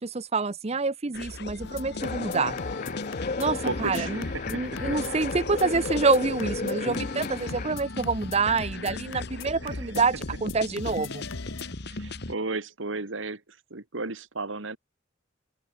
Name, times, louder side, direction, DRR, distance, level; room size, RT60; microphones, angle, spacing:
voice 1, 0.0-2.6 3.4-10.1 10.4-11.3, right 4 dB, 30° right, 0.7 m, -27 dB
sound 1, 1.1-12.3, left 2 dB, 55° left, 1.7 m, -39 dB
sound 2, 1.6-11.7, left 3 dB, 85° left, 1.2 m, -40 dB
sound 3, 2.0-7.7, left 4 dB, 40° left, 0.6 m, -34 dB
voice 2, 3.6-5.0 9.6-9.9 11.9-14.8, right 3 dB, 75° right, 1.9 m, -35 dB
open air
head